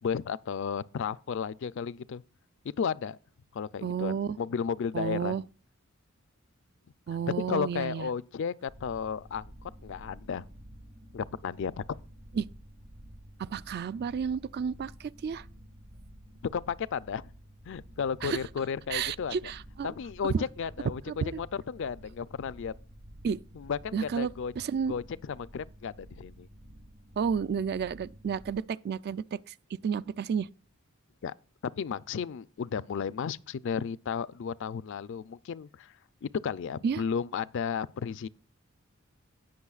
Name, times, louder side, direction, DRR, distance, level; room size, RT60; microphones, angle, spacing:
voice 1, 0.0-2.2 2.8-3.2 3.5-5.4 7.3-10.5 11.1-11.8 16.5-17.3 17.7-19.5 19.8-21.0 21.4-22.7 23.5-24.5 24.9-26.5 31.2-31.3 31.8-35.9 36.2-38.3, left 6 dB, 60° left, 0.4 m, -33 dB
voice 2, 3.8-4.4 4.9-5.4 7.1-8.1 12.3-12.5 13.4-15.5 18.2-18.4 18.9-19.9 20.3-20.4 21.1-21.4 23.2-23.4 23.9-24.9 27.2-30.5 36.8-37.0, right 6 dB, 50° right, 0.3 m, -31 dB
sound 1, 8.7-28.6, equal, 80° right, 1.9 m, -51 dB
18.0 x 6.2 x 2.4 m
head